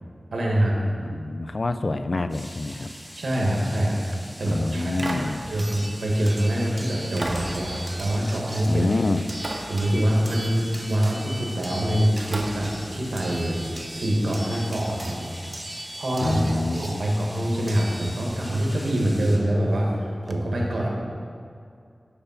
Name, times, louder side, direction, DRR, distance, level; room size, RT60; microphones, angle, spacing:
voice 1, 0.3-0.8 3.1-4.0 4.4-8.9 9.7-15.3 15.9-20.9, right 1 dB, 90° right, -2 dB, 1.4 m, -25 dB
voice 2, 1.0-2.9 4.5-5.4 8.7-9.2 16.2-17.0, left 2 dB, 60° left, 10 dB, 0.4 m, -26 dB
sound 1, 2.3-19.4, equal, 15° left, 2.2 m, -43 dB
sound 2, 4.0-4.3 5.0-6.5 7.2-9.0 9.3-10.5 11.2-11.4 12.2-14.0 15.4-15.5, right 1 dB, 55° right, 0.9 m, -37 dB
sound 3, 4.1-4.2 5.6-18.6 19.8-19.9 20.3-20.4, right 1 dB, 25° right, 0.8 m, -40 dB
7.0 x 5.7 x 5.6 m, 2.4 s
cardioid pair, 45°, 0 cm